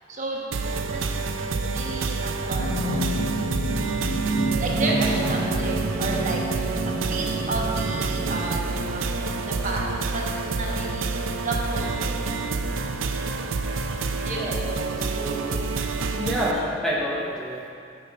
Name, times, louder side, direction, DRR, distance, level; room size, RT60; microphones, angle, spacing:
voice 1, 0.1-0.4 0.9-1.0 1.4-3.1 4.6-6.8 7.1-8.6 8.9-9.8 10.1-11.1 11.4-12.2 14.2-15.3, right 2 dB, 40° right, -2 dB, 1.2 m, -32 dB
sound 1, 0.5-16.5, right 4 dB, 85° right, 0.5 m, -28 dB
sound 2, 2.6-8.4, right 1 dB, 65° left, 1.3 m, -29 dB
voice 2, 4.4-4.9 14.3-14.5 15.0-15.6 16.1-17.7, equal, ahead, -5 dB, 0.8 m, -29 dB
9.6 x 5.5 x 5.5 m, 2.5 s
head